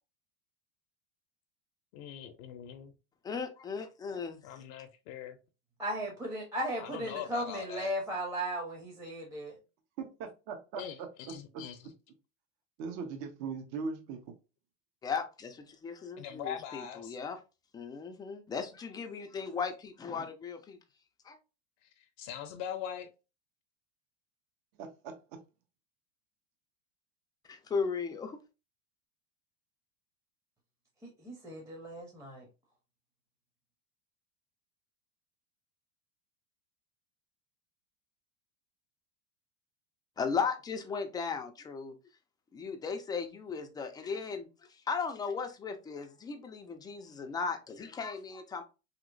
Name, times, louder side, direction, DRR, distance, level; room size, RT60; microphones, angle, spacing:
voice 1, 1.9-2.9 4.4-5.4 6.8-7.9 10.8-11.8 16.2-17.2 22.2-23.1, left 9 dB, 55° left, 0.5 m, -42 dB
voice 2, 3.2-4.6 15.0-17.4 17.7-20.8 21.2-21.4 27.5-28.4 40.2-42.0 42.5-44.5 44.9-48.6, left 5 dB, 10° left, 0.3 m, -36 dB
voice 3, 5.8-9.5 31.2-32.5, right 1 dB, 10° right, 0.7 m, -36 dB
voice 4, 10.0-11.9 12.8-14.3 24.8-25.4, right 5 dB, 50° right, 0.7 m, -40 dB
3.0 x 2.9 x 2.5 m
supercardioid pair, 110°, 39 cm